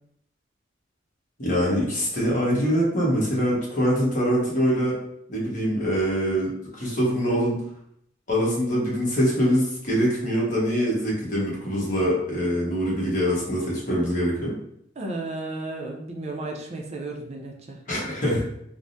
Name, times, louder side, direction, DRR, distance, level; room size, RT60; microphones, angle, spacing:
voice 1, 1.4-5.0 5.3-7.6 8.3-14.5 17.9-18.4, equal, 45° left, -5 dB, 1.0 m, -24 dB
voice 2, 15.0-18.2, right 2 dB, 35° right, 0 dB, 0.5 m, -34 dB
3.4 x 2.1 x 2.6 m, 0.72 s
head